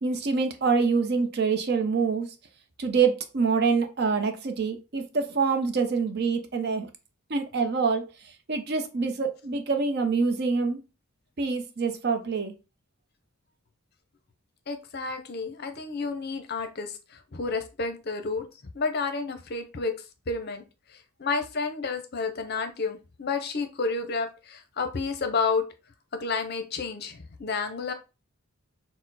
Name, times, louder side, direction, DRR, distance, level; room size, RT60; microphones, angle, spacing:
voice 1, 0.0-2.3 2.8-6.9 7.3-8.0 8.5-10.8 11.4-12.5, right 5 dB, 50° right, 0.6 m, -25 dB
voice 2, 14.7-16.9 17.3-18.4 18.7-19.9 20.3-20.6 21.2-25.6 26.2-27.9, left 4 dB, 50° left, 0.6 m, -30 dB
4.4 x 2.1 x 3.9 m
head